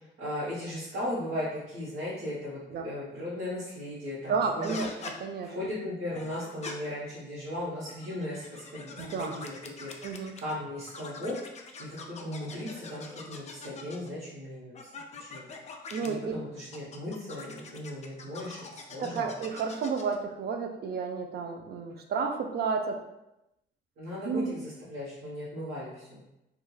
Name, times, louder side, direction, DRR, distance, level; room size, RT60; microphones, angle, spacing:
voice 1, 0.2-2.6 2.8-4.7 5.4-9.9 10.4-11.4 11.8-14.9 15.3-15.5 16.0-19.3 24.0-26.2, left 1 dB, 85° right, -10 dB, 1.0 m, -37 dB
voice 2, 4.3-5.6 9.0-9.4 10.0-10.3 15.9-16.4 19.0-23.0 24.2-24.5, right 5 dB, 55° right, 4 dB, 0.4 m, -31 dB
sound 1, 4.6-5.2 6.1-6.7 7.7-10.5 10.9-14.1 14.7-16.1 16.7-20.2, left 4 dB, 35° left, 0.4 m, -44 dB
3.0 x 2.3 x 2.3 m, 0.90 s
cardioid pair, 90°, 20 cm